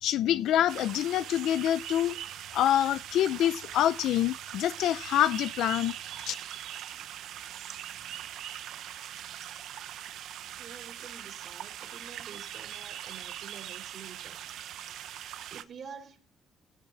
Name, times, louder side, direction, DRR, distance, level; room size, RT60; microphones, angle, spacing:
voice 1, 0.0-2.1 2.5-5.9 6.3-6.4, left 11 dB, 85° left, 0.6 m, -26 dB
sound 1, 0.7-15.6, right 11 dB, 80° right, 0.9 m, -41 dB
voice 2, 6.9-7.2 7.9-8.2 10.6-14.4 15.5-16.2, right 6 dB, 50° right, 3.8 m, -49 dB
15.0 x 6.8 x 6.1 m
cardioid pair, 160°, 0 cm